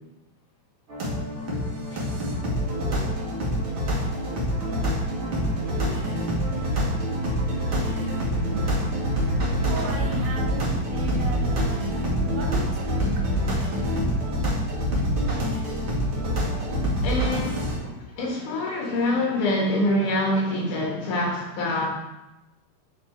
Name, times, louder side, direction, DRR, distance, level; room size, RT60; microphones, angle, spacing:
sound 1, 0.9-17.8, equal, 50° right, 1.8 m, -26 dB
voice 1, 5.3-5.9 8.4-12.0 12.3-13.6, right 3 dB, 70° right, 0 dB, 2.2 m, -37 dB
voice 2, 17.0-21.9, left 1 dB, 80° left, -1 dB, 3.0 m, -25 dB
8.5 x 3.8 x 4.3 m, 0.96 s
omnidirectional pair, 3.6 m